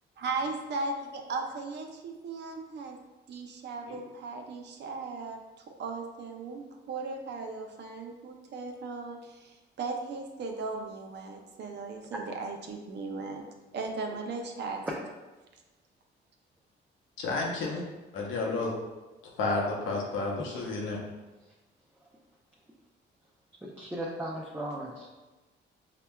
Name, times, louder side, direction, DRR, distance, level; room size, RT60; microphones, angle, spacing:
voice 1, 0.2-3.0 3.3-5.4 5.8-13.4 13.7-14.8 17.3-17.4, right 3 dB, 60° right, 3 dB, 0.6 m, -37 dB
voice 2, 17.2-17.8 18.1-18.7 19.4-21.0, left 3 dB, 85° left, -1 dB, 0.8 m, -31 dB
voice 3, 23.6-25.1, right 1 dB, 10° right, -4 dB, 0.5 m, -37 dB
5.6 x 2.2 x 2.2 m, 1.2 s
cardioid pair, 90°, 20 cm